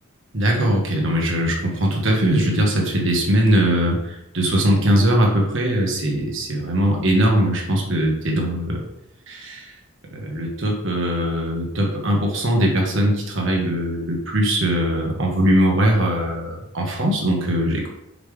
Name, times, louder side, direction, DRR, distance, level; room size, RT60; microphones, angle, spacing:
voice 1, 0.3-8.8 9.3-9.7 10.1-17.9, right 1 dB, 60° right, -1 dB, 1.6 m, -20 dB
5.9 x 5.1 x 3.5 m, 0.85 s
head